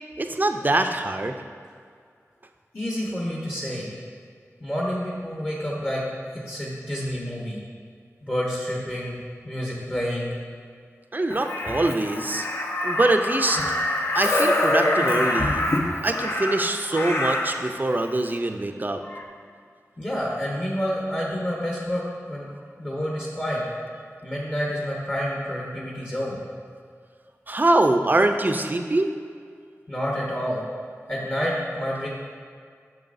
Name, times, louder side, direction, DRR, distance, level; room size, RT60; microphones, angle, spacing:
voice 1, 0.2-1.3 11.1-12.5 12.8-13.6 14.1-15.7 16.0-19.0 27.5-29.1, right 2 dB, 35° right, 6 dB, 0.5 m, -23 dB
voice 2, 2.7-3.9 4.6-6.0 6.5-7.6 8.2-9.1 9.4-10.3 20.0-22.5 22.8-23.6 24.2-26.4 29.9-30.6 31.1-32.1, equal, 30° left, -4 dB, 1.1 m, -28 dB
Crow, 11.3-17.6 19.0-19.2, left 1 dB, 55° left, 0.7 m, -25 dB
8.8 x 6.2 x 2.6 m, 2.1 s
wide cardioid pair, 55°, 6 cm